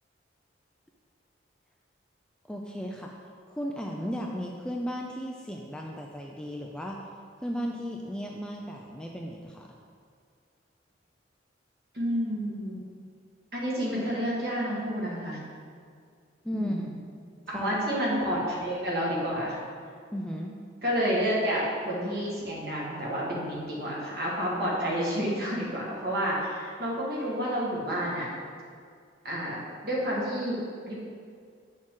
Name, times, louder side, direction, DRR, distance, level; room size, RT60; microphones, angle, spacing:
voice 1, 2.4-3.1 3.5-7.1 7.4-9.7 16.4-16.9 17.5-17.8 20.1-20.6, equal, 5° left, 0 dB, 0.3 m, -35 dB
voice 2, 11.9-12.8 13.5-15.4 16.5-16.8 17.5-19.6 20.8-28.3 29.2-30.6 30.9-31.0, equal, 55° right, -5 dB, 1.8 m, -29 dB
7.4 x 6.3 x 3.8 m, 2.2 s
head